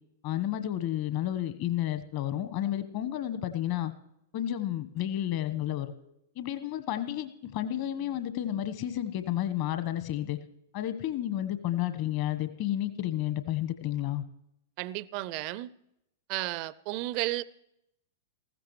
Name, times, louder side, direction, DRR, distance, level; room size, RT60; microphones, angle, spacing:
voice 1, 0.2-3.9 4.3-5.9 6.4-10.4 10.7-14.2, left 12 dB, 45° left, 11 dB, 1.2 m, -31 dB
voice 2, 14.8-15.7 16.3-17.4, right 18 dB, 40° right, 20 dB, 0.5 m, -33 dB
19.5 x 15.5 x 3.2 m, 0.81 s
figure-of-eight pair, 100°, 0 cm